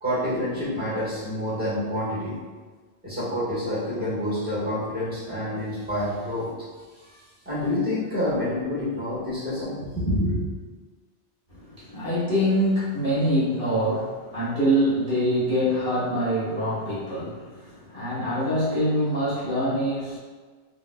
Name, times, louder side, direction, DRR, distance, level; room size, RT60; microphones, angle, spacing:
voice 1, 0.0-2.4 3.0-6.5 7.0-10.4, left 1 dB, 10° right, -11 dB, 1.4 m, -28 dB
voice 2, 11.5-20.2, equal, 50° right, -11 dB, 1.5 m, -25 dB
3.6 x 2.9 x 2.3 m, 1.4 s
omnidirectional pair, 1.2 m